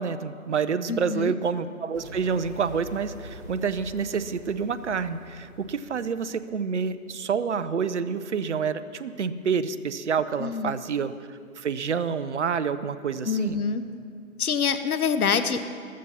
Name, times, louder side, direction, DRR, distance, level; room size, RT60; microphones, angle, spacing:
voice 1, 0.0-13.6, right 6 dB, 50° right, 13 dB, 0.7 m, -28 dB
voice 2, 0.9-1.3 10.4-10.7 13.2-13.8 14.4-15.7, left 6 dB, 75° left, 10 dB, 1.0 m, -26 dB
sound 1, 1.9-6.7, equal, 15° right, 0.7 m, -44 dB
15.0 x 13.0 x 5.6 m, 2.3 s
figure-of-eight pair, 155°, 44 cm